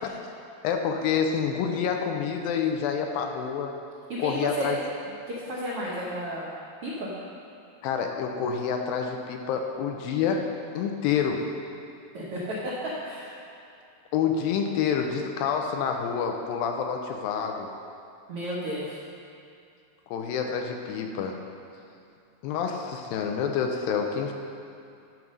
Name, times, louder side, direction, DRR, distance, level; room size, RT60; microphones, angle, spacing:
voice 1, 0.6-3.8 4.2-4.8 7.8-10.5 10.8-11.5 14.1-17.7 20.1-21.4 22.4-24.3, left 7 dB, 80° left, 4 dB, 2.3 m, -28 dB
voice 2, 4.1-4.7 5.3-6.5 6.8-7.1 12.1-12.7 13.0-13.4 18.3-19.0, equal, 80° right, -6 dB, 1.3 m, -32 dB
11.0 x 6.1 x 5.4 m, 2.5 s
omnidirectional pair, 4.4 m